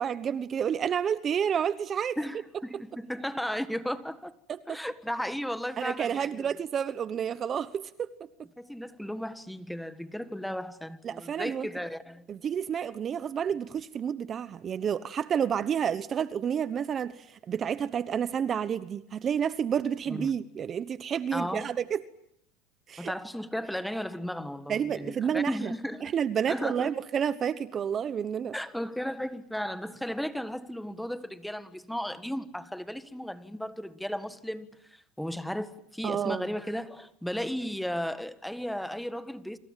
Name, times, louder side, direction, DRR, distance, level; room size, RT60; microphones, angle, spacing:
voice 1, 0.0-2.2 2.7-2.8 4.5-4.8 5.8-8.1 11.0-11.7 12.3-22.0 22.9-23.1 24.7-25.7 26.0-28.5 36.0-36.5, right 8 dB, 35° right, 1.1 m, -30 dB
voice 2, 2.2-4.3 4.7-6.3 8.6-12.3 20.1-20.3 21.3-21.7 23.0-26.1 26.5-26.9 28.5-39.6, equal, ahead, 1.6 m, -35 dB
28.5 x 26.5 x 7.5 m
supercardioid pair, 110°, 0 cm